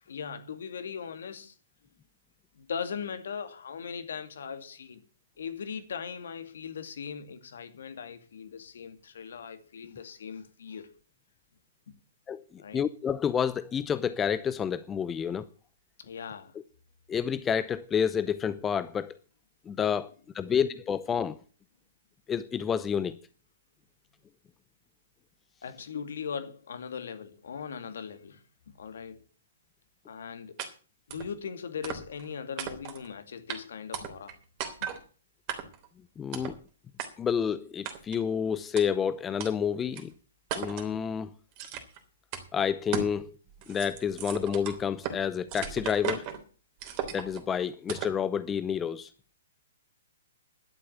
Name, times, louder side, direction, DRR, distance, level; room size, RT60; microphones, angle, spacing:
voice 1, 0.1-1.5 2.5-5.0 5.4-10.9 12.6-12.9 16.0-16.6 20.4-20.5 25.6-28.4 28.7-29.2 30.0-30.6 31.1-34.4 34.8-34.9, left 6 dB, 70° left, 2.3 m, -39 dB
voice 2, 12.3-15.5 17.1-19.2 19.7-21.4 22.3-23.2 36.2-36.6 37.2-40.1 40.6-41.3 42.5-43.4 43.7-46.3 47.1-49.1, left 7 dB, 15° left, 0.6 m, -29 dB
sound 1, 30.6-30.7 31.1-31.3 31.8-32.3 32.6-33.1 33.5-33.6 33.9-34.3 34.6-35.0 35.5-35.9 36.3-36.6 37.0-37.1 37.8-38.2 38.8-38.9 39.4-39.5 39.9-40.0 40.5-40.9 41.6-42.0 42.3-42.4 42.9-43.2 43.5-45.2 45.5-46.4 46.8-47.4 47.9-48.2, right 8 dB, 35° right, 3.1 m, -36 dB
12.0 x 7.7 x 8.1 m
hypercardioid pair, 130°, 0 cm